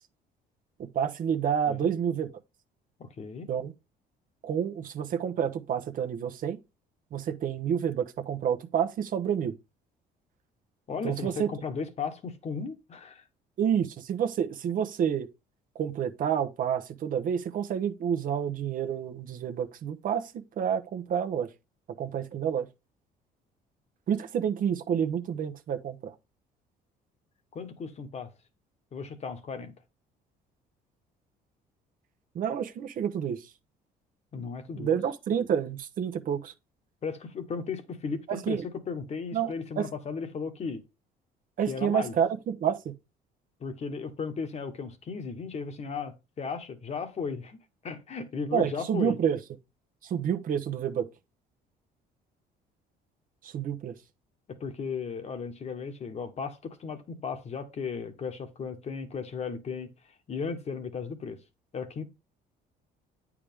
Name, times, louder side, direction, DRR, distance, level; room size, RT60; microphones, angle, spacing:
voice 1, 0.9-2.3 3.5-3.7 4.4-6.6 7.1-9.5 11.0-11.5 13.6-15.3 15.7-21.5 22.0-22.7 24.1-26.1 32.3-33.4 34.8-36.5 38.3-38.6 39.3-39.9 41.6-42.9 48.5-49.4 50.0-51.1 53.4-53.9, right 8 dB, 55° right, 0.9 m, -29 dB
voice 2, 3.0-3.5 10.9-13.2 27.5-28.3 28.9-29.7 34.3-35.0 37.0-40.8 41.7-42.1 43.6-47.6 47.8-49.2 54.5-59.9 60.3-61.4 61.7-62.0, left 5 dB, 40° left, 1.2 m, -35 dB
8.6 x 4.8 x 3.6 m
cardioid pair, 110°, 17 cm